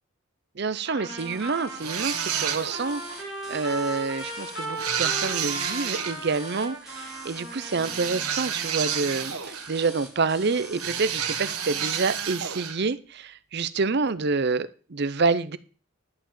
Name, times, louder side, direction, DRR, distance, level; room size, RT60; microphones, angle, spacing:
voice 1, 0.6-15.6, right 4 dB, 50° right, 0.6 m, -28 dB
Trumpet, 0.8-8.2, right 1 dB, 60° left, 6.9 m, -37 dB
sound 1, 1.2-12.2, right 1 dB, 5° right, 2.1 m, -45 dB
sound 2, 1.8-3.0 4.8-6.2 7.8-9.8 10.8-12.8, right 8 dB, 85° right, 1.3 m, -30 dB
11.5 x 4.9 x 7.4 m
head